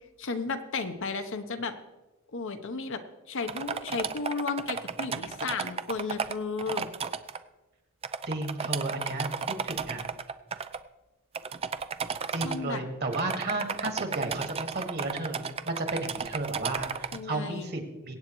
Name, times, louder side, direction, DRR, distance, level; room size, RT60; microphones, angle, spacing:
voice 1, 0.2-1.8 2.3-3.0 3.3-6.9 12.4-12.8 17.1-17.7, left 4 dB, 60° left, 7 dB, 0.9 m, -33 dB
sound 1, 3.5-7.4 8.0-10.8 11.3-12.6 13.1-17.2, right 6 dB, 25° right, 0.4 m, -33 dB
voice 2, 8.3-9.3 9.6-10.0 12.3-18.1, right 2 dB, 45° right, 4 dB, 1.9 m, -33 dB
23.0 x 8.9 x 3.1 m, 1.1 s
head